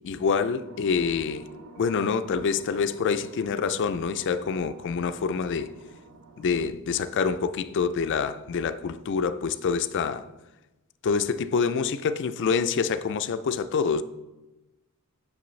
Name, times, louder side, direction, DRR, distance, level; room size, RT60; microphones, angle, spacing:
voice 1, 0.0-1.5 1.8-5.7 6.4-10.3 11.0-14.0, left 5 dB, 55° left, 0.4 m, -26 dB
sound 1, 0.7-6.5, right 3 dB, 85° right, 0.8 m, -49 dB
8.4 x 6.2 x 3.2 m
head